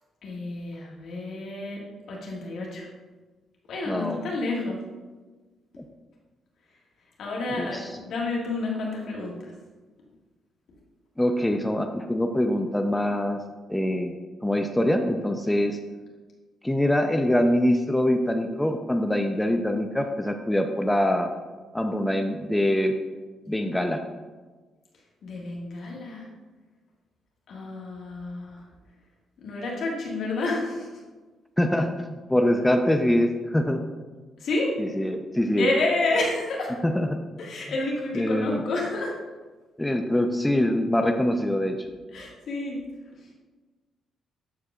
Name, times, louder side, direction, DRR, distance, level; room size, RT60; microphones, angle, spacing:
voice 1, 0.2-1.8 2.1-2.9 3.7-4.8 7.2-9.5 25.2-26.3 27.5-28.6 29.4-30.9 34.4-34.7 35.6-36.7 37.4-39.1 42.1-42.8, left 2 dB, 65° left, -2 dB, 1.9 m, -29 dB
voice 2, 3.9-4.2 5.8-5.9 7.5-7.9 11.2-13.4 13.7-14.2 14.4-15.8 16.6-21.3 21.7-22.9 23.5-24.0 31.6-33.8 34.8-35.7 36.8-37.1 38.1-38.6 39.8-41.9, left 1 dB, 10° left, 5 dB, 0.7 m, -24 dB
12.5 x 4.7 x 2.5 m, 1.3 s
hypercardioid pair, 50°, 0 cm